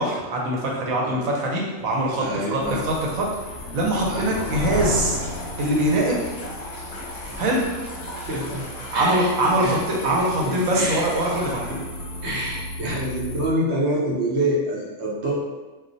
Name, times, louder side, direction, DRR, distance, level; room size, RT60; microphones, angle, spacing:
voice 1, 0.0-3.3 3.7-5.2 5.6-6.2 7.4-7.7 8.9-11.8, right 1 dB, 80° right, -2 dB, 1.1 m, -23 dB
sound 1, 1.8-12.9, equal, 20° left, 1.2 m, -42 dB
voice 2, 2.2-2.8 4.0-4.3 8.3-8.7 8.9-9.3 9.6-9.8 10.0-11.1 11.7-11.8 12.2-15.3, right 1 dB, 60° right, -4 dB, 0.9 m, -26 dB
sound 2, 2.6-13.5, left 1 dB, 65° left, 0.8 m, -34 dB
sound 3, 4.3-11.5, left 1 dB, 35° left, 0.7 m, -39 dB
2.4 x 2.1 x 3.8 m, 1.2 s
omnidirectional pair, 1.4 m